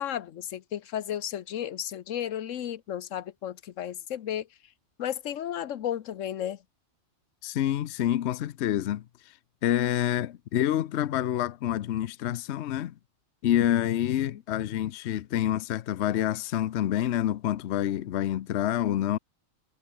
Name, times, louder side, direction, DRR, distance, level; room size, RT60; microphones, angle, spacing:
voice 1, 0.0-4.5 5.0-6.6 14.3-14.4, left 10 dB, 85° left, 1.2 m, -33 dB
voice 2, 7.4-9.4 9.6-12.9 13.4-19.2, left 11 dB, 65° left, 0.9 m, -27 dB
omnidirectional pair, 1.3 m